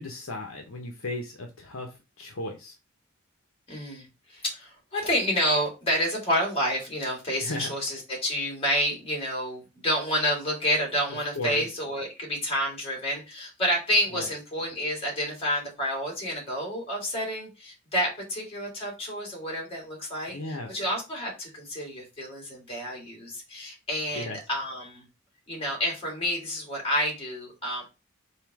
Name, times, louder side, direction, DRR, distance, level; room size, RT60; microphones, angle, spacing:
voice 1, 0.0-2.8 7.4-7.7 11.4-11.6 14.1-14.3 20.3-20.9 24.1-24.4, left 2 dB, 70° left, 2 dB, 0.8 m, -35 dB
voice 2, 3.7-25.1 25.5-27.9, equal, 25° left, -1 dB, 2.1 m, -29 dB
3.7 x 2.7 x 4.6 m, 0.27 s
head